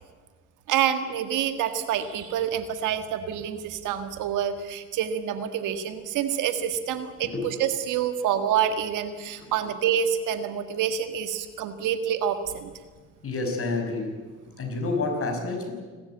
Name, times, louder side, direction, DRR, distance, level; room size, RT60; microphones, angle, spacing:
voice 1, 0.7-12.7, right 9 dB, 90° right, 9 dB, 1.7 m, -27 dB
voice 2, 13.2-14.3 14.6-15.7, left 3 dB, 45° left, 3 dB, 6.1 m, -29 dB
27.5 x 13.0 x 9.0 m, 1.5 s
cardioid pair, 90°, 30 cm